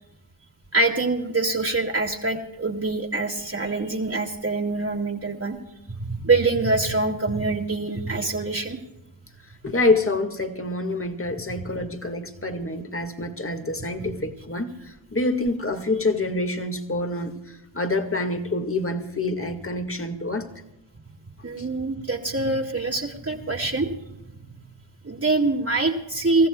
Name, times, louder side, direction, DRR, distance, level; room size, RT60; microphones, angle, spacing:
voice 1, 0.7-5.6 6.0-8.8 21.4-23.9 25.0-26.5, right 3 dB, 30° right, 2.4 m, -24 dB
voice 2, 9.6-20.5 21.6-21.7, left 2 dB, 30° left, 2.1 m, -27 dB
28.0 x 14.5 x 2.4 m
cardioid pair, 45°, 47 cm